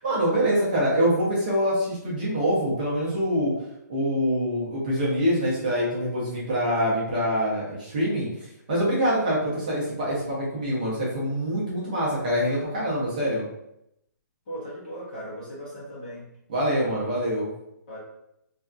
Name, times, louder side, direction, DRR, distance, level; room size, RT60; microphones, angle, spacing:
voice 1, 0.0-3.5 3.9-13.4 16.5-17.5, equal, 25° right, -7 dB, 0.7 m, -25 dB
voice 2, 14.5-16.3 17.9-18.0, equal, 25° left, -7 dB, 0.9 m, -37 dB
2.6 x 2.4 x 2.3 m, 0.82 s
hypercardioid pair, 175°, 10 cm